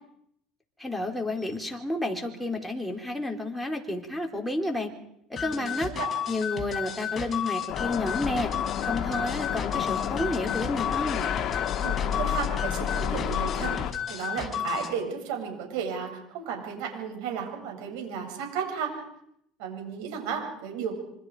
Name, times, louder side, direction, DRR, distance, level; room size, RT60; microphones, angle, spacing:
voice 1, 0.8-4.9 5.3-5.9 6.3-8.5 8.8-11.3, left 2 dB, ahead, 1 dB, 4.0 m, -31 dB
sound 1, 5.4-14.9, left 8 dB, 25° left, 5.0 m, -33 dB
voice 2, 5.4-6.1 11.8-18.9 19.6-21.0, right 7 dB, 80° right, 3 dB, 7.3 m, -34 dB
sound 2, 7.7-13.9, left 10 dB, 50° left, 1.5 m, -30 dB
26.5 x 25.5 x 5.0 m, 0.75 s
supercardioid pair, 105°, 0 cm